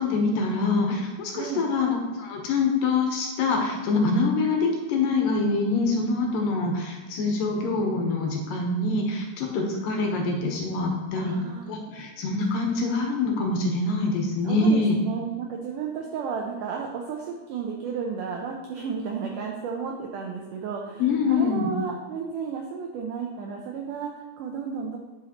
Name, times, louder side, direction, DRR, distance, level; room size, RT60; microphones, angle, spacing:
voice 1, 0.0-11.4 11.7-15.0 21.0-21.7, left 3 dB, 70° left, 1 dB, 2.4 m, -25 dB
voice 2, 11.1-11.7 14.4-25.0, right 6 dB, 85° right, 1 dB, 1.8 m, -33 dB
10.5 x 5.5 x 2.9 m, 1.2 s
omnidirectional pair, 4.4 m